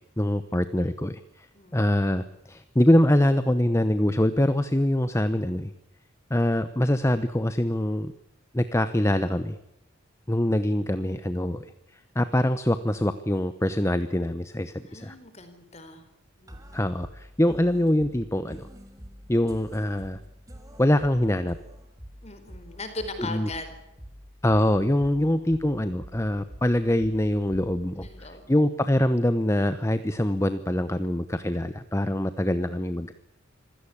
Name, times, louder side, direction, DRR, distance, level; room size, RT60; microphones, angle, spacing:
voice 1, 0.2-1.5 1.7-5.7 6.3-8.1 8.5-9.6 10.3-11.7 12.1-15.1 16.7-18.6 19.3-20.2 20.8-21.6 23.3-23.5 24.4-33.1, left 1 dB, 15° left, 12 dB, 0.9 m, -24 dB
voice 2, 1.5-1.9 14.8-16.1 16.4-16.9 22.2-23.8 25.1-25.6 28.0-28.7, left 2 dB, 30° left, 9 dB, 4.3 m, -40 dB
sound 1, 16.5-28.5, equal, 15° right, 3.4 m, -46 dB
26.0 x 17.0 x 8.6 m, 0.86 s
head